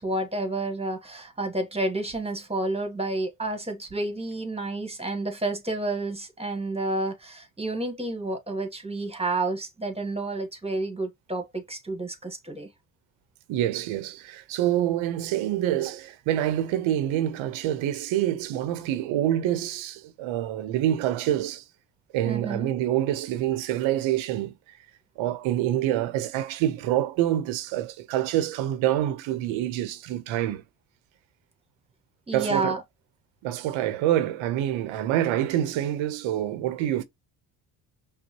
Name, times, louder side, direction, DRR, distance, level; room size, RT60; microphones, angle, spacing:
voice 1, 0.0-12.7 22.2-22.7 32.3-32.8, right 2 dB, 15° right, 1.6 m, -30 dB
voice 2, 13.5-21.6 22.1-24.5 25.2-30.6 32.3-32.8 33.4-37.0, right 12 dB, 80° right, 0.9 m, -26 dB
5.4 x 2.3 x 3.0 m
supercardioid pair, 75°, 47 cm